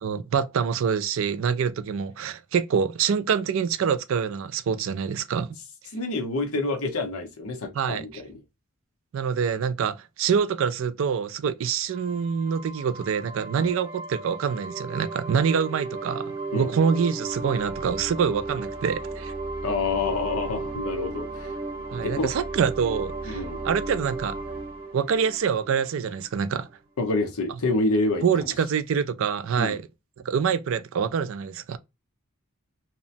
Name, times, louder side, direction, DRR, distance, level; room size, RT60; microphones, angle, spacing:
voice 1, 0.0-5.6 7.7-8.0 9.1-19.3 21.9-24.4 24.9-26.7 28.2-29.8 30.2-31.8, right 6 dB, 60° right, 0.3 m, -26 dB
voice 2, 5.9-8.4 13.6-13.7 16.5-16.7 19.6-21.5 21.9-22.3 23.3-23.6 27.0-28.5 29.6-29.8, left 2 dB, 80° left, 0.8 m, -28 dB
sound 1, 11.9-26.4, right 3 dB, 25° right, 0.7 m, -35 dB
2.9 x 2.1 x 2.6 m
head